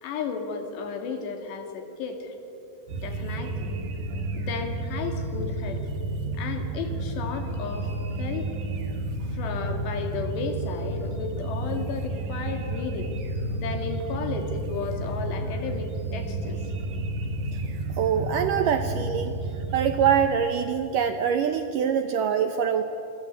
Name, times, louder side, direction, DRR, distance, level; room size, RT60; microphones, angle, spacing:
voice 1, 0.0-2.4 3.0-3.7 4.3-5.8 6.3-7.9 8.2-8.5 9.3-13.1 13.6-16.6, left 5 dB, 80° left, 5 dB, 4.5 m, -34 dB
sound 1, 2.9-20.3, right 2 dB, 55° right, 2.8 m, -32 dB
sound 2, 3.4-5.8 6.1-9.8 10.1-13.8 14.1-17.8 18.1-19.2, right 1 dB, 25° right, 2.5 m, -37 dB
voice 2, 17.9-19.3 19.7-22.8, right 8 dB, 75° right, 8 dB, 2.0 m, -24 dB
27.5 x 24.5 x 8.2 m, 2.8 s
omnidirectional pair, 4.9 m